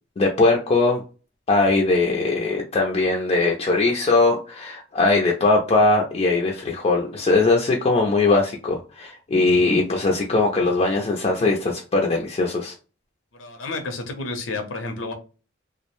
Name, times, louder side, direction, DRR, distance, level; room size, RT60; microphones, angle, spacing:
voice 1, 0.2-1.0 1.5-12.7, left 3 dB, 35° left, 0 dB, 0.4 m, -20 dB
voice 2, 13.3-15.1, left 3 dB, 80° left, 5 dB, 0.6 m, -30 dB
2.4 x 2.0 x 2.9 m, 0.34 s
head